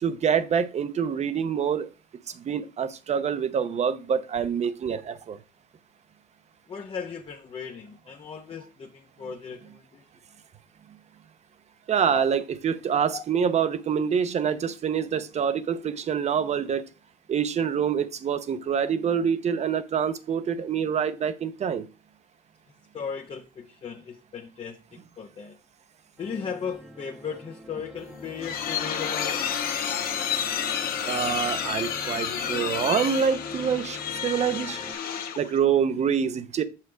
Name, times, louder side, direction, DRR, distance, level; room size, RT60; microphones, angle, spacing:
voice 1, 0.0-1.9 2.5-5.4 11.9-16.8 17.3-21.8 31.1-34.8 35.4-36.6, right 7 dB, 40° right, 0.8 m, -26 dB
voice 2, 6.7-10.0 12.1-12.3 13.1-13.2 22.9-24.8 25.2-25.5 26.2-29.4, left 6 dB, 35° left, 0.8 m, -36 dB
sound 1, 26.2-34.9, right 1 dB, 5° right, 1.3 m, -45 dB
sound 2, 28.0-35.6, left 8 dB, 60° left, 1.1 m, -30 dB
6.4 x 5.7 x 4.5 m
cardioid pair, 110°, 17 cm